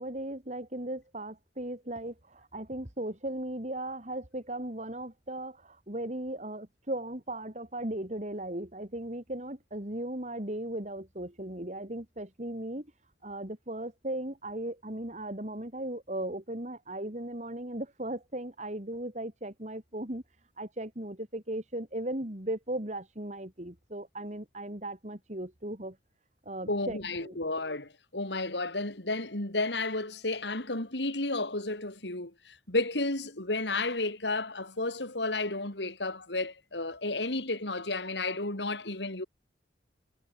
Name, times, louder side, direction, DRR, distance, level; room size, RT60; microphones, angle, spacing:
voice 1, 0.0-12.9 13.2-20.2 20.6-26.0 26.4-27.4, right 1 dB, 40° right, 3.3 m, -37 dB
voice 2, 26.7-39.2, left 2 dB, 75° left, 4.2 m, -32 dB
head